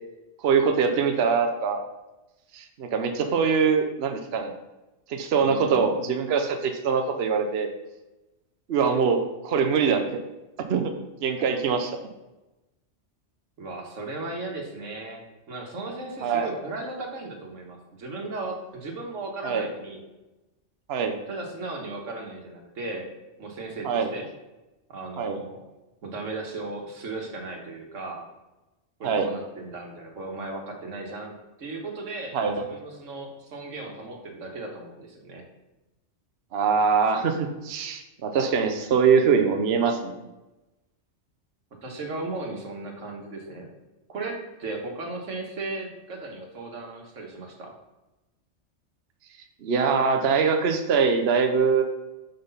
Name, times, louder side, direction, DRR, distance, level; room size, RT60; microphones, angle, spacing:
voice 1, 0.4-1.8 2.5-4.5 5.1-7.7 8.7-10.2 10.7-10.9 11.2-12.1 16.2-16.6 19.4-19.7 20.9-21.2 23.8-24.1 25.2-25.4 29.0-29.3 32.3-32.6 36.5-40.2 49.6-51.8, right 5 dB, 60° right, 5 dB, 0.9 m, -23 dB
voice 2, 5.4-5.9 13.6-20.0 21.3-23.1 23.4-24.3 24.9-25.6 26.0-28.2 29.0-32.4 32.7-35.4 41.8-43.7 44.1-47.7, right 2 dB, 90° right, 1 dB, 1.7 m, -36 dB
5.9 x 5.1 x 5.5 m, 1.0 s
omnidirectional pair, 1.3 m